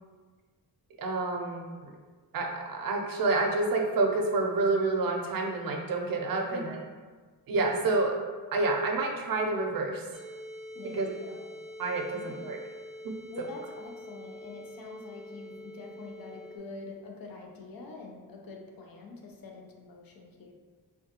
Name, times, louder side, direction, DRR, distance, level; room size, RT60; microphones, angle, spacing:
voice 1, 1.0-1.9 2.3-6.8 7.5-8.2 8.5-10.1 10.9-11.1 11.8-12.6 13.0-13.1, right 3 dB, 65° right, 2 dB, 0.5 m, -28 dB
voice 2, 6.5-6.9 10.7-11.5 12.1-12.6 13.3-20.5, left 3 dB, 65° left, 1 dB, 0.6 m, -45 dB
sound 1, 10.1-16.6, left 1 dB, ahead, 0.4 m, -45 dB
3.7 x 2.2 x 2.8 m, 1.5 s
wide cardioid pair, 120°, 37 cm